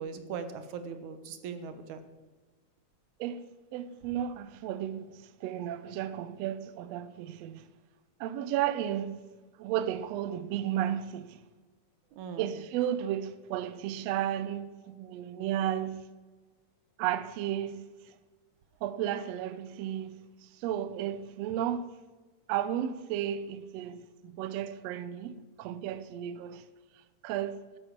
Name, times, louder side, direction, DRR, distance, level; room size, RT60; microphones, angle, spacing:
voice 1, 0.0-2.0 12.1-12.5, right 6 dB, 70° right, 2.4 m, -39 dB
voice 2, 3.7-7.7 8.2-9.1 9.6-11.4 12.4-16.0 17.0-18.1 18.8-20.1 20.4-21.9 22.5-26.7 27.2-27.6, right 11 dB, 90° right, 1.4 m, -33 dB
12.5 x 9.0 x 7.2 m
omnidirectional pair, 3.8 m